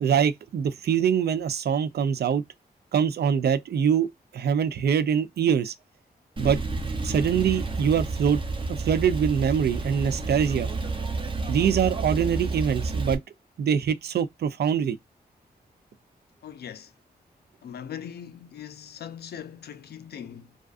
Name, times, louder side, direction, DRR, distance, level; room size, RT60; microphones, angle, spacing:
voice 1, 0.0-2.4 2.9-5.7 6.4-6.6 7.0-8.4 8.8-10.7 11.5-13.2 13.6-15.0, right 7 dB, 80° right, 0.4 m, -24 dB
Male speech man speaking / Car / Idling, 6.4-13.1, right 3 dB, 30° right, 0.6 m, -30 dB
voice 2, 16.4-16.9 17.6-20.6, left 9 dB, 75° left, 0.4 m, -40 dB
2.4 x 2.3 x 2.3 m
wide cardioid pair, 85°, 17 cm